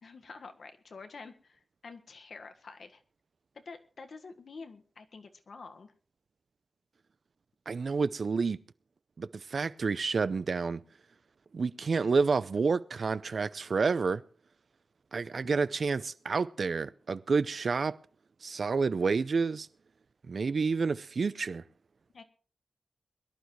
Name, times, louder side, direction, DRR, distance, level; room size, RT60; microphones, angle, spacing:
voice 1, 0.0-3.0 3.5-5.9 22.1-22.2, left 4 dB, 75° left, 1.6 m, -48 dB
voice 2, 7.7-8.6 9.2-10.8 11.5-14.2 15.1-18.0 18.4-19.7 20.3-21.6, right 4 dB, 65° right, 0.6 m, -29 dB
22.5 x 11.5 x 3.2 m
wide cardioid pair, 115°, 0 cm